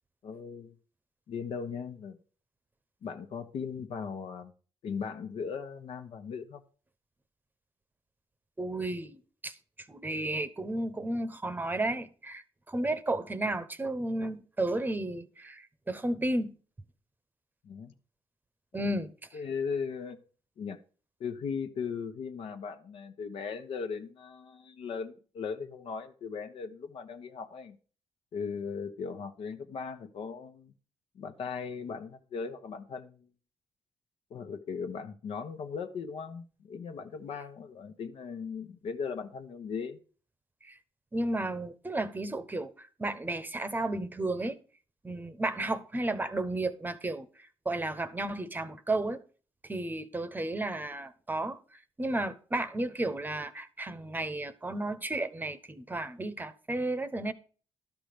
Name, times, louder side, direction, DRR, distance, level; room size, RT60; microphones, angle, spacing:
voice 1, 0.2-0.7 1.3-2.2 3.0-4.5 4.8-6.6 17.6-17.9 18.7-18.9 19.3-20.2 20.6-20.8 21.2-27.8 28.3-30.7 31.1-33.3 34.3-40.0, left 6 dB, 70° left, 1.2 m, -38 dB
voice 2, 8.6-9.5 9.9-16.5 18.7-19.1 40.6-40.8 41.1-44.6 45.0-47.3 47.6-49.2 49.6-51.6 52.0-57.3, right 2 dB, 20° right, 0.9 m, -33 dB
12.0 x 6.0 x 5.0 m
cardioid pair, 105°, 10 cm